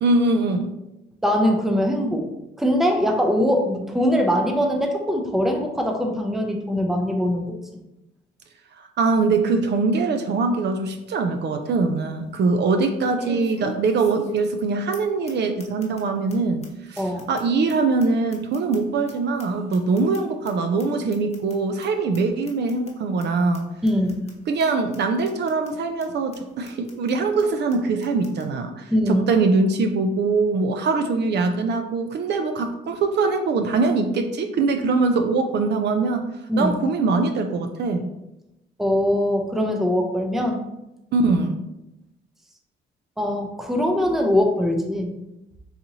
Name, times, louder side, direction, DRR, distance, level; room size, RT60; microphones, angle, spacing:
voice 1, 0.0-0.7 9.0-16.6 16.9-23.7 24.5-36.3 36.6-38.1 41.1-41.6, right 3 dB, 60° right, 6 dB, 0.4 m, -22 dB
voice 2, 1.2-2.2 2.6-7.6 17.0-17.3 23.8-24.2 28.9-29.2 36.5-36.7 38.8-40.6 43.2-45.1, equal, ahead, 3 dB, 0.5 m, -22 dB
sound 1, 10.8-10.9 11.4-11.5 13.2-14.6 14.9-15.0 15.3-15.4 15.6-16.0 16.3-16.4 16.6-16.7 17.0-19.1 19.4-20.5 20.8-20.9 21.1-21.5 21.8-21.9 22.1-22.2 22.5-22.9 23.2-23.3 23.5-23.6 23.9-24.3 24.6-24.7 24.9-25.0 25.2-25.7 26.0-26.1 26.3-26.4 26.6-27.1 27.4-27.5 27.7-27.8 28.0-28.5, left 2 dB, 35° left, 0.9 m, -40 dB
4.0 x 2.7 x 2.8 m, 0.91 s
cardioid pair, 90°, 20 cm